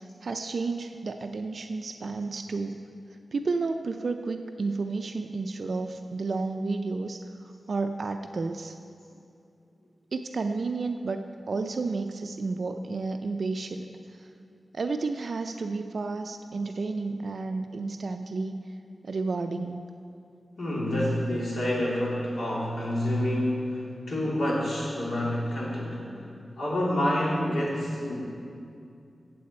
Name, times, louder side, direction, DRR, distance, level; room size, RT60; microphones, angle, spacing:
voice 1, 0.2-2.8 3.3-7.2 7.7-8.7 10.1-14.3 14.7-18.6 19.0-19.9, right 3 dB, 60° right, 6 dB, 0.4 m, -31 dB
voice 2, 20.6-26.3 26.6-28.2, left 1 dB, 70° left, -5 dB, 2.9 m, -28 dB
16.0 x 7.6 x 4.3 m, 2.5 s
wide cardioid pair, 115°, 0 cm